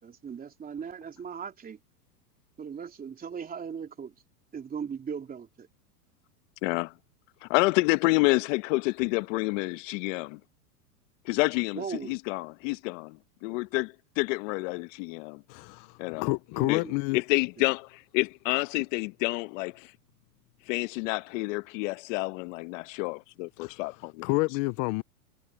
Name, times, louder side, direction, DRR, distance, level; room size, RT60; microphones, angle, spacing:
voice 1, 0.0-1.8 2.6-4.1 4.5-5.7 11.7-12.1 16.6-16.9, right 7 dB, 20° right, 3.3 m, -38 dB
voice 2, 6.6-6.9 7.4-10.4 11.2-15.4 16.0-16.3 16.7-16.8 17.1-19.9 20.7-24.3, left 24 dB, 50° left, 1.1 m, -29 dB
voice 3, 15.5-17.2 23.6-23.8 24.2-25.0, left 25 dB, 35° left, 0.5 m, -29 dB
hypercardioid pair, 130°, 48 cm